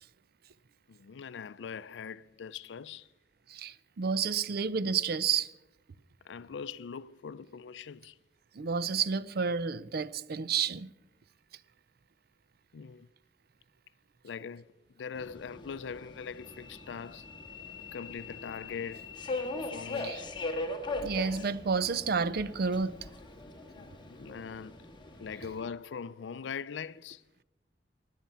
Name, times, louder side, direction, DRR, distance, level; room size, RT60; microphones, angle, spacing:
voice 1, 0.9-3.1 6.2-8.2 12.7-13.1 14.2-17.3 17.9-19.1 19.4-20.3 23.7-24.9 25.2-27.2, left 6 dB, 80° left, 0.4 m, -42 dB
voice 2, 3.5-5.5 8.5-10.9 20.0-20.2 21.0-23.1, right 5 dB, 60° right, 0.5 m, -30 dB
Subway metro underground, 15.1-25.7, left 2 dB, 25° left, 1.6 m, -40 dB
16.5 x 10.0 x 5.6 m
head